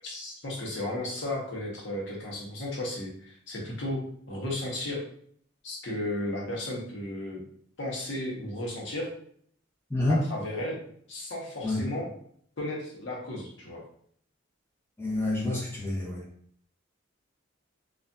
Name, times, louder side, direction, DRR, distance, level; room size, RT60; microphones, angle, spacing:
voice 1, 0.0-4.0 4.3-5.0 5.6-7.4 7.8-9.1 10.1-10.8 11.1-12.1 12.6-13.8, left 1 dB, 65° left, -3 dB, 0.8 m, -34 dB
voice 2, 9.9-10.2 11.6-11.8 15.0-16.2, left 2 dB, 10° left, -7 dB, 0.8 m, -28 dB
2.6 x 2.4 x 2.2 m, 0.62 s
head